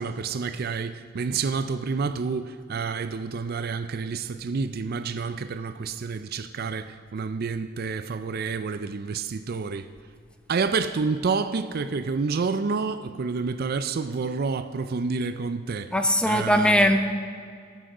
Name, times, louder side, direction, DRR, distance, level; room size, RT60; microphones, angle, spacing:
voice 1, 0.0-9.9 10.5-15.9 16.3-16.9, right 4 dB, 50° right, 0.4 m, -29 dB
voice 2, 15.9-17.0, equal, 5° left, 0.8 m, -20 dB
17.5 x 7.7 x 4.9 m
head